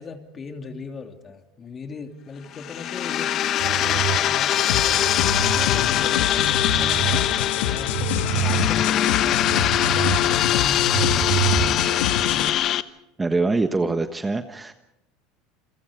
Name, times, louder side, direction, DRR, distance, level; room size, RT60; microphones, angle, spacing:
voice 1, 0.0-5.0 5.4-12.4, left 4 dB, 30° left, 5 dB, 2.9 m, -38 dB
sound 1, 2.5-12.8, left 11 dB, 45° left, 1.0 m, -22 dB
sound 2, 3.6-5.7 6.1-7.2 7.6-10.2 10.5-12.0, right 15 dB, 80° right, 4.3 m, -28 dB
sound 3, 4.7-12.5, left 10 dB, 85° left, 1.8 m, -27 dB
voice 2, 13.2-14.7, right 3 dB, 15° right, 8 dB, 1.3 m, -24 dB
29.0 x 23.0 x 5.1 m, 0.86 s
supercardioid pair, 115°, 0 cm